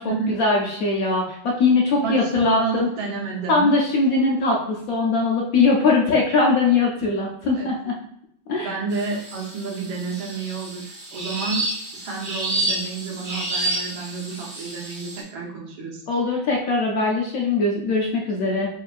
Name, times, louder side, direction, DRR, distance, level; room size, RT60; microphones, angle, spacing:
voice 1, 0.3-2.9 3.5-7.9 8.5-8.8 16.1-18.7, left 3 dB, 80° left, -1 dB, 0.7 m, -21 dB
voice 2, 2.0-3.7 7.6-7.7 8.6-11.7 11.9-16.0, right 5 dB, 75° right, -2 dB, 1.7 m, -30 dB
sound 1, 8.9-15.2, right 2 dB, 40° right, 1.7 m, -30 dB
4.6 x 3.2 x 2.4 m, 0.72 s
omnidirectional pair, 2.2 m